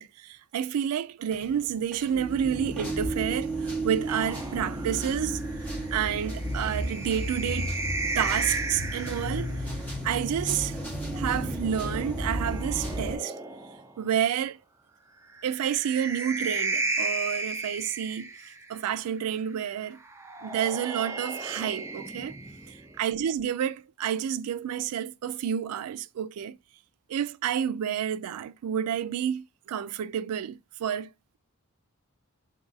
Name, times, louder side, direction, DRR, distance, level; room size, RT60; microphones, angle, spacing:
voice 1, 0.0-5.4 5.9-7.7 8.2-9.7 10.0-10.8 11.1-13.3 14.0-14.6 15.4-18.3 18.7-20.0 20.4-22.3 22.7-26.6 27.1-31.4, right 9 dB, 85° right, 0.3 m, -30 dB
sound 1, 1.3-1.6 1.9-13.1, right 1 dB, 5° left, 0.9 m, -33 dB
sound 2, 4.1-9.6 11.0-14.0 15.3-18.8 20.0-23.0, right 3 dB, 10° right, 0.4 m, -35 dB
3.9 x 2.4 x 3.9 m
head